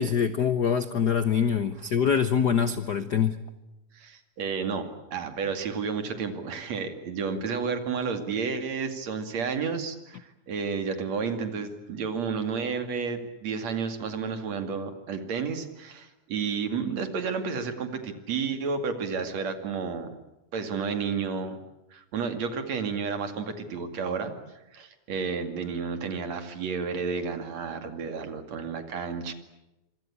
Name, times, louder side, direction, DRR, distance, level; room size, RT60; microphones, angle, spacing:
voice 1, 0.0-3.4, left 7 dB, 70° left, 12 dB, 0.9 m, -24 dB
voice 2, 3.9-20.1 20.5-21.6 21.9-24.3 24.7-29.3, right 5 dB, 65° right, 8 dB, 3.5 m, -31 dB
26.0 x 25.0 x 8.5 m, 0.94 s
omnidirectional pair, 3.4 m